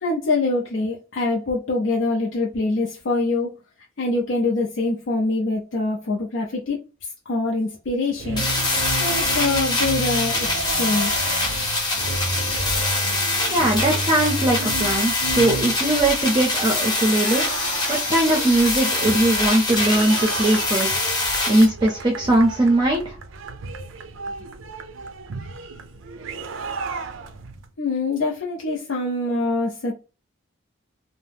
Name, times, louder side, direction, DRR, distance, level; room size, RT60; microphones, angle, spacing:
voice 1, 0.0-3.5 4.0-6.8 7.3-8.4 9.0-11.5 27.8-29.9, left 2 dB, 65° left, 0.5 m, -24 dB
sound 1, 8.1-27.7, right 3 dB, 75° right, 0.4 m, -32 dB
sound 2, 8.4-21.7, left 2 dB, 20° left, 0.8 m, -24 dB
voice 2, 13.5-17.4 17.9-23.1, right 1 dB, 25° right, 0.5 m, -20 dB
2.7 x 2.0 x 3.3 m
head